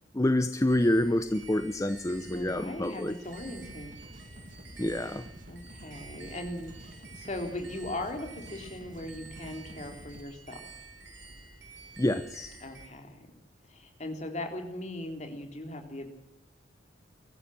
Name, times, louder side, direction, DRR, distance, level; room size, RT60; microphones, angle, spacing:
voice 1, 0.1-3.1 4.8-5.2 12.0-12.5, left 1 dB, 15° left, 11 dB, 0.7 m, -27 dB
sound 1, 0.7-12.9, right 3 dB, 70° right, 3.6 m, -50 dB
voice 2, 2.3-4.0 5.5-10.7 12.6-13.3 13.7-16.1, left 1 dB, 40° left, 5 dB, 3.5 m, -39 dB
sound 2, 3.2-10.2, right 1 dB, 45° right, 2.2 m, -49 dB
23.0 x 14.5 x 7.7 m, 0.85 s
head